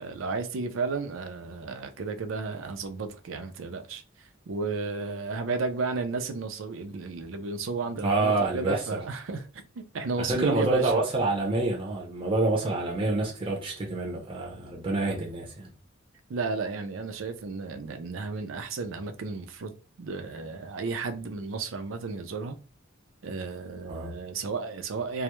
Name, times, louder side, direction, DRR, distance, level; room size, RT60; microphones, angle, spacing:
voice 1, 0.0-4.0 4.5-11.0 16.3-19.7 20.0-22.6 23.2-25.2, right 4 dB, 85° right, 0.4 m, -33 dB
voice 2, 8.0-9.0 10.2-15.7 23.9-24.1, right 2 dB, 25° right, 0.5 m, -27 dB
2.2 x 2.0 x 2.9 m
head